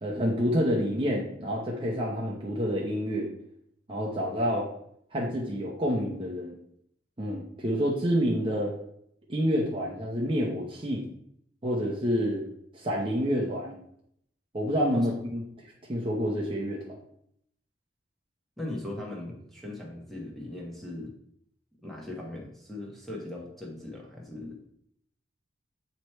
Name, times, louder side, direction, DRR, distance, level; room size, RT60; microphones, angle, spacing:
voice 1, 0.0-3.3 3.9-4.7 5.1-6.6 7.2-8.7 9.3-11.0 11.6-12.4 12.7-13.8 14.5-15.4 15.9-17.0, equal, 30° right, -3 dB, 0.8 m, -28 dB
voice 2, 18.6-21.1 21.8-24.6, left 1 dB, ahead, -3 dB, 1.3 m, -39 dB
8.0 x 3.1 x 4.5 m, 0.72 s
head